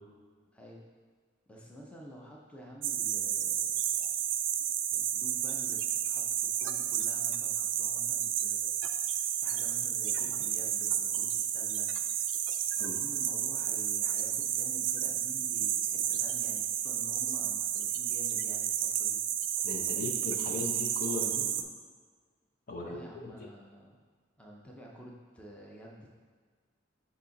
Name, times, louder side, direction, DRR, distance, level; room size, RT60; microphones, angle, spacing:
voice 1, 0.5-0.8 1.5-4.1 4.9-8.7 9.4-11.9 12.7-19.2 22.8-24.0 24.4-26.1, equal, 5° left, -3 dB, 0.6 m, -50 dB
sound 1, 2.8-21.6, right 10 dB, 70° right, 0.4 m, -31 dB
voice 2, 19.6-21.5 22.7-23.0, left 3 dB, 50° left, 1 dB, 0.7 m, -37 dB
6.6 x 2.8 x 5.7 m, 1.5 s
head